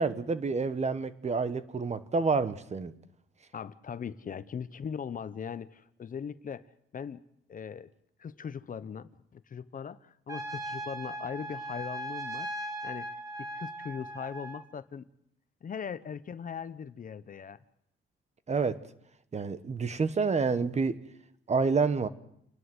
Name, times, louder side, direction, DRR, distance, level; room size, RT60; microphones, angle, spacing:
voice 1, 0.0-2.9 18.5-18.8 19.3-21.0 21.5-22.1, right 4 dB, 35° right, 13 dB, 1.4 m, -28 dB
voice 2, 3.5-7.2 7.5-7.9 8.2-13.1 13.5-15.0 15.6-17.6, left 7 dB, 45° left, 14 dB, 0.9 m, -40 dB
Trumpet, 10.3-14.6, right 1 dB, 15° right, 2.5 m, -38 dB
29.0 x 11.5 x 8.0 m, 0.75 s
cardioid pair, 90°, 20 cm